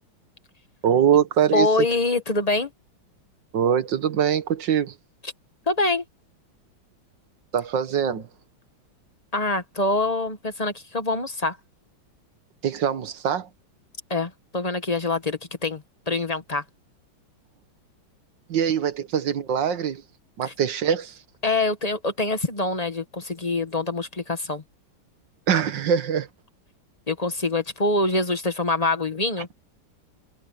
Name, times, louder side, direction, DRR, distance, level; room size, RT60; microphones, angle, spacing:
voice 1, 0.8-1.7 3.5-4.9 7.5-8.3 12.6-13.5 18.5-20.0 20.4-21.1 25.5-26.3, right 8 dB, 65° right, 1.9 m, -23 dB
voice 2, 1.5-2.7 5.2-5.3 5.7-6.0 9.3-11.6 14.1-16.6 20.4-20.5 21.4-24.6 27.1-29.5, left 2 dB, 25° left, 1.1 m, -25 dB
omnidirectional pair, 2.1 m